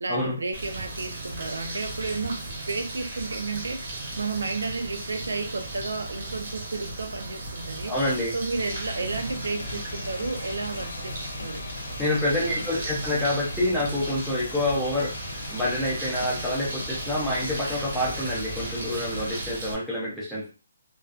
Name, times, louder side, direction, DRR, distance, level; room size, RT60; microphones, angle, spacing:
voice 1, 0.0-7.9 8.3-11.6 12.4-12.6, right 3 dB, 85° right, 5 dB, 0.5 m, -32 dB
sound 1, 0.5-19.7, right 2 dB, 35° right, 0.8 m, -36 dB
voice 2, 7.9-8.3 12.0-15.1 15.5-20.5, left 1 dB, ahead, -8 dB, 0.5 m, -27 dB
sound 2, 8.6-19.4, left 3 dB, 50° left, 0.4 m, -39 dB
2.4 x 2.3 x 2.4 m, 0.32 s
hypercardioid pair, 180°, 0 cm